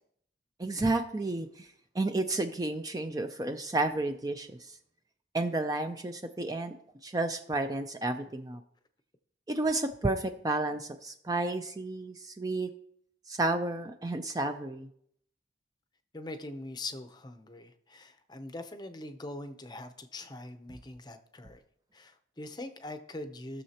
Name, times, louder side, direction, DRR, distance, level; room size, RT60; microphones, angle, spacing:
voice 1, 0.6-1.7 1.9-4.7 5.3-6.8 7.0-8.6 9.5-12.7 13.3-14.9, right 2 dB, 20° right, 7 dB, 0.4 m, -31 dB
voice 2, 16.1-21.6 21.9-23.6, left 2 dB, 20° left, 8 dB, 0.6 m, -42 dB
17.0 x 6.5 x 2.9 m, 0.68 s
head